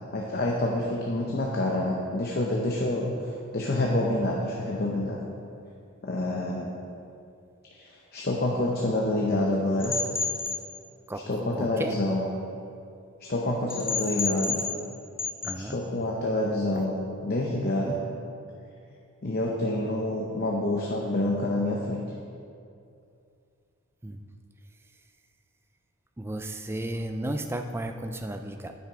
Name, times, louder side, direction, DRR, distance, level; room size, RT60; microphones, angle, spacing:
voice 1, 0.1-5.2 6.0-6.7 7.8-9.9 11.3-12.3 13.3-14.6 15.6-17.0 17.2-18.0 19.2-22.0, left 1 dB, 45° left, -2 dB, 0.7 m, -27 dB
sound 1, 9.8-10.6 13.7-14.9 15.2-15.5, left 5 dB, 10° left, 0.9 m, -30 dB
voice 2, 11.1-11.9 15.4-15.8 16.8-16.9 24.0-24.2 26.2-28.7, right 1 dB, 10° right, 6 dB, 0.3 m, -34 dB
9.0 x 5.8 x 5.0 m, 2.5 s
head